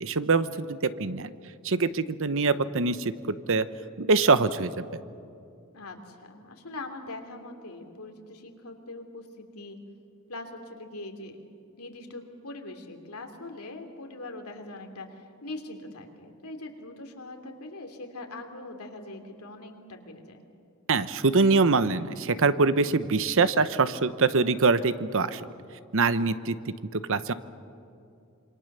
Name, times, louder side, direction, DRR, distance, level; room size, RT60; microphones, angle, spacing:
voice 1, 0.0-1.3 1.6-3.7 4.0-5.0 20.9-25.4 25.9-26.6 26.9-27.3, right 4 dB, 65° right, 13 dB, 0.9 m, -24 dB
voice 2, 5.7-9.8 10.3-11.4 11.8-20.4, left 2 dB, 85° left, 4 dB, 2.9 m, -42 dB
27.0 x 24.5 x 6.8 m, 2.5 s
head